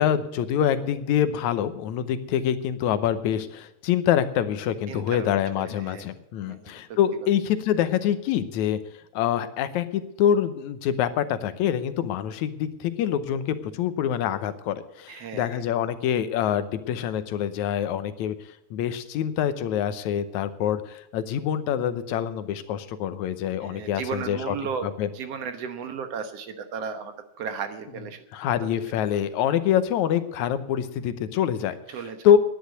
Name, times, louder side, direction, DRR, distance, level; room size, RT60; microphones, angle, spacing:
voice 1, 0.0-8.8 9.1-18.4 18.7-24.6 24.8-25.1 28.3-31.8 32.2-32.4, left 10 dB, 80° left, 12 dB, 2.2 m, -25 dB
voice 2, 4.9-5.3 5.6-6.1 6.5-7.0 15.1-15.5 23.6-28.2 31.9-32.2, right 6 dB, 65° right, 9 dB, 2.0 m, -35 dB
10.5 x 10.5 x 9.2 m, 0.83 s
omnidirectional pair, 3.3 m